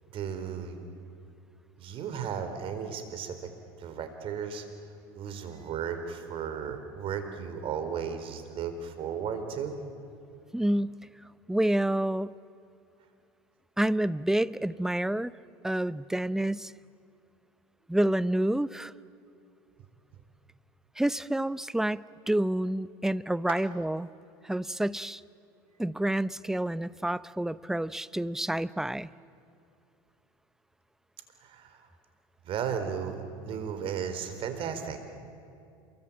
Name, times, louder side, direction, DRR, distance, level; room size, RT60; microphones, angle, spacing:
voice 1, 0.1-0.8 1.8-3.5 3.8-4.6 5.2-9.8 31.4-31.9 32.4-33.2 33.4-35.0, right 7 dB, 50° right, 8 dB, 4.3 m, -35 dB
voice 2, 10.5-11.0 11.5-12.3 13.8-15.3 15.6-16.7 17.9-18.9 21.0-24.1 24.4-25.2 25.8-29.1, right 1 dB, 5° right, 17 dB, 0.7 m, -28 dB
28.5 x 23.0 x 8.8 m, 2.5 s
hypercardioid pair, 90°, 12 cm